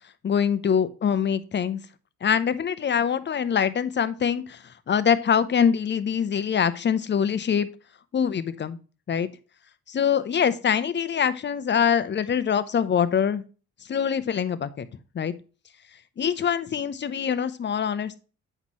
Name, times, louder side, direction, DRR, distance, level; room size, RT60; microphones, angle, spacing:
voice 1, 0.2-1.8 2.2-7.7 8.1-8.8 9.1-9.3 9.9-13.4 13.9-14.9 15.1-15.3 16.2-18.2, left 7 dB, 35° left, 14 dB, 0.7 m, -24 dB
8.1 x 5.5 x 3.0 m, 0.34 s
cardioid pair, 90°, 30 cm